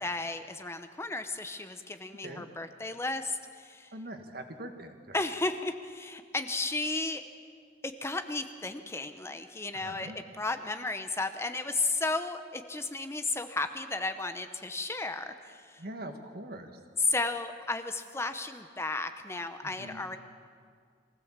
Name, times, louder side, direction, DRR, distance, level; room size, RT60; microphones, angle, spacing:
voice 1, 0.0-3.9 5.1-7.2 7.8-15.8 17.0-20.2, left 3 dB, 15° left, 9 dB, 0.8 m, -34 dB
voice 2, 3.9-5.2 9.7-10.2 15.8-16.8 19.6-20.1, right 1 dB, 60° right, 5 dB, 1.7 m, -43 dB
23.0 x 16.5 x 7.4 m, 2.1 s
head